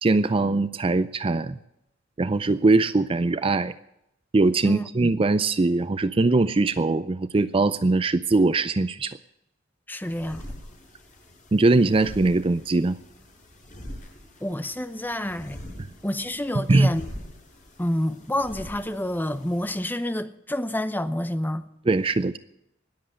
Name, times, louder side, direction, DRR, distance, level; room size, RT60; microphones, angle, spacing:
voice 1, 0.0-1.6 2.2-3.7 4.3-9.2 11.5-13.0 16.6-16.9 21.9-22.4, right 3 dB, 30° right, 0.5 m, -21 dB
voice 2, 4.6-5.1 9.9-10.4 14.4-15.6 16.0-17.0 17.8-21.6, left 1 dB, 10° left, 0.8 m, -28 dB
sound 1, 10.0-19.8, equal, 45° left, 6.3 m, -44 dB
20.0 x 7.9 x 7.7 m
head